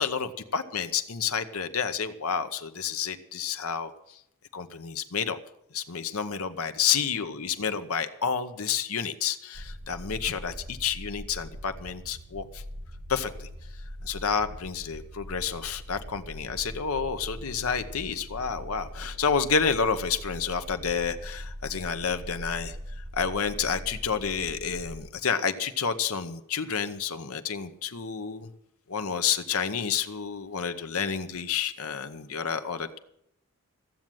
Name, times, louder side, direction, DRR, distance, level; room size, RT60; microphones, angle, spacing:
voice 1, 0.0-3.9 4.5-5.4 5.7-12.6 13.1-13.5 14.0-28.5 28.9-33.0, left 6 dB, 75° left, 9 dB, 0.9 m, -30 dB
sound 1, 9.5-25.1, equal, 70° right, 1.5 m, -41 dB
15.0 x 7.5 x 9.2 m, 0.77 s
head